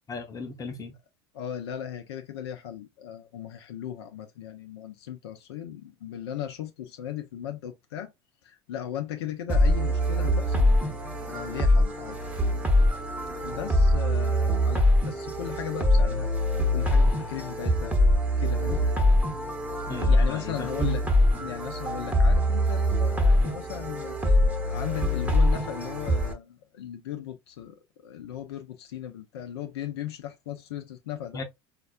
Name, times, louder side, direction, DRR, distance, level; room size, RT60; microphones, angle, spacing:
voice 1, 0.1-0.9 19.9-21.0 21.4-21.5 31.3-31.4, left 3 dB, 25° left, 0.8 m, -35 dB
voice 2, 1.3-8.1 8.4-10.7 11.2-12.2 13.4-16.3 16.7-17.9 18.4-18.8 20.0-21.0 21.4-27.8 28.0-31.4, left 10 dB, 70° left, 0.5 m, -37 dB
sound 1, 9.5-26.3, left 1 dB, 10° right, 1.0 m, -23 dB
4.1 x 2.5 x 2.4 m
figure-of-eight pair, 75°, 14 cm